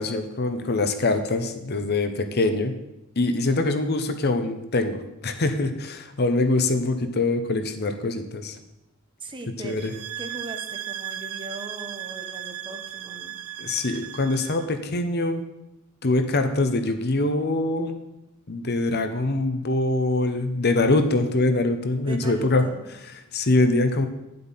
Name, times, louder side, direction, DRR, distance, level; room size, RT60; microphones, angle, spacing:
voice 1, 0.0-2.7 3.2-8.6 9.6-9.9 13.6-15.4 16.0-18.0 18.5-22.6 23.3-24.1, left 2 dB, 50° left, 8 dB, 0.9 m, -24 dB
voice 2, 9.2-9.8 10.2-13.4 22.0-22.9, right 2 dB, 25° right, 5 dB, 1.1 m, -39 dB
sound 1, 9.7-14.7, right 11 dB, 80° right, 0.6 m, -36 dB
9.4 x 7.9 x 5.6 m, 0.90 s
head